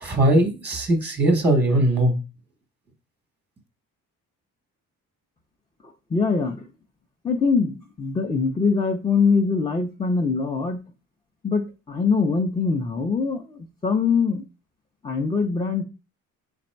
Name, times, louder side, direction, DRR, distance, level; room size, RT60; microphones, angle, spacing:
voice 1, 0.0-2.2, right 1 dB, 5° right, 0.8 m, -20 dB
voice 2, 5.8-6.7 7.2-10.8 11.4-14.5 15.0-15.8, left 4 dB, 15° left, 0.4 m, -23 dB
4.1 x 2.5 x 4.3 m
cardioid pair, 135°, 33 cm